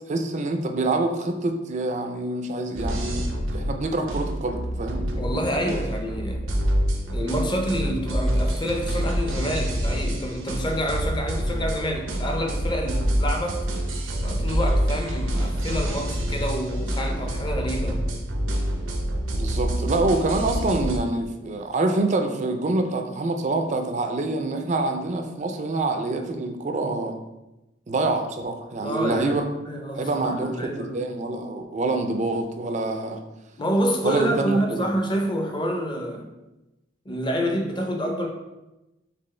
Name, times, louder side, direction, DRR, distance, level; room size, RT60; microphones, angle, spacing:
voice 1, 0.1-5.1 19.3-27.2 27.9-29.4 29.9-33.2 34.0-34.9, right 2 dB, 35° right, 5 dB, 0.4 m, -26 dB
sound 1, 2.7-21.0, equal, 90° right, 0.7 m, -27 dB
voice 2, 5.2-6.4 7.1-13.6 14.2-18.0 28.8-31.1 33.6-36.2 37.1-38.3, equal, 25° left, 2 dB, 0.5 m, -28 dB
4.3 x 3.4 x 3.2 m, 1.0 s
head